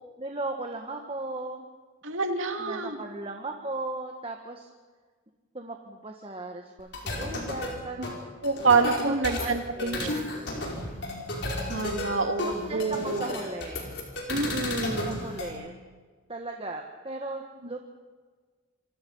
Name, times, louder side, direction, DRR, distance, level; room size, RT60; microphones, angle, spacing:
voice 1, 0.2-1.6 2.6-4.7 5.5-8.3 9.0-10.4 12.4-13.9 15.0-15.7 16.3-17.8, right 2 dB, 25° right, 3 dB, 1.5 m, -37 dB
voice 2, 2.0-3.0 8.0-8.1 8.4-10.1 11.7-13.3 14.3-15.2, right 4 dB, 70° right, 5 dB, 2.5 m, -27 dB
sound 1, 6.8-15.5, left 1 dB, 55° left, 5.0 m, -33 dB
28.0 x 23.5 x 5.6 m, 1.5 s
head